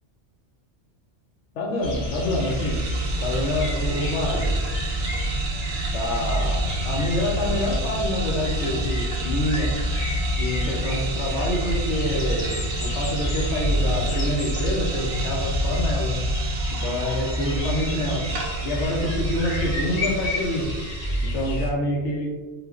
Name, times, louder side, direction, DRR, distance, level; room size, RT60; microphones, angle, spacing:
voice 1, 1.5-2.8 3.2-4.6 5.9-9.7 10.4-12.5 12.8-16.2 16.8-18.3 18.6-20.7 21.2-22.3, left 1 dB, 85° left, -1 dB, 0.9 m, -27 dB
sound 1, 1.8-21.7, left 2 dB, 60° left, 0.4 m, -30 dB
sound 2, 1.8-21.5, right 2 dB, 60° right, 0.7 m, -29 dB
3.2 x 2.3 x 2.3 m, 1.2 s
omnidirectional pair, 1.2 m